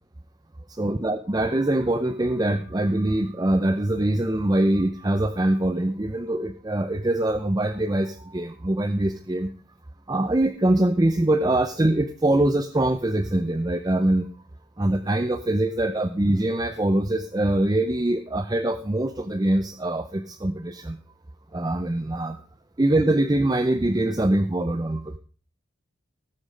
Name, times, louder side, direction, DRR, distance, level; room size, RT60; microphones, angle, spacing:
voice 1, 0.8-9.5 10.1-14.3 14.8-21.0 21.5-22.4 22.8-25.2, right 1 dB, 20° right, 7 dB, 0.5 m, -23 dB
18.0 x 6.2 x 5.0 m, 0.41 s
head